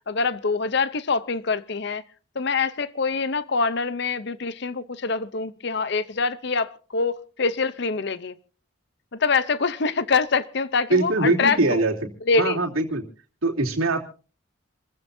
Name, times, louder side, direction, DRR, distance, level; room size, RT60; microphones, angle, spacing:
voice 1, 0.1-2.0 2.3-8.3 9.1-11.8 12.2-12.6, left 4 dB, 55° left, 0.7 m, -25 dB
voice 2, 10.9-11.9 12.4-13.0 13.4-14.0, right 2 dB, 85° right, 3.1 m, -22 dB
27.5 x 15.5 x 2.7 m
head